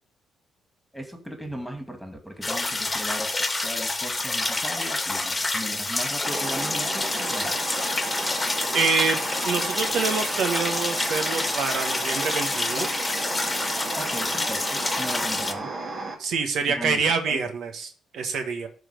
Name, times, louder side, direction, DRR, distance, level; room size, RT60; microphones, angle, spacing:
voice 1, 0.9-3.3 3.6-7.6 14.0-15.7 16.7-17.0 17.3-17.4, equal, ahead, 5 dB, 2.4 m, -37 dB
sound 1, 2.4-15.5, left 2 dB, 15° left, 1.6 m, -28 dB
sound 2, 6.2-16.1, right 3 dB, 50° right, 2.4 m, -33 dB
voice 2, 8.7-12.9 16.2-18.7, right 5 dB, 70° right, 6 dB, 1.5 m, -26 dB
12.5 x 4.2 x 6.8 m, 0.42 s
cardioid pair, 90°, 0 cm